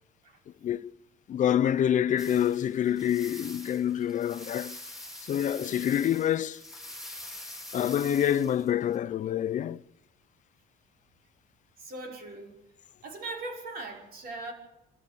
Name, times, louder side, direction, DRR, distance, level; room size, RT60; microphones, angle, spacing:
voice 1, 0.6-0.9 1.3-4.8 5.3-6.6 7.7-9.8, left 10 dB, 50° left, 0.7 m, -27 dB
sound 1, 2.2-9.0, left 1 dB, ahead, 3.5 m, -45 dB
voice 2, 11.8-12.5 13.0-14.5, right 2 dB, 60° right, 5.8 m, -39 dB
28.0 x 13.5 x 6.9 m
cardioid pair, 110°, 17 cm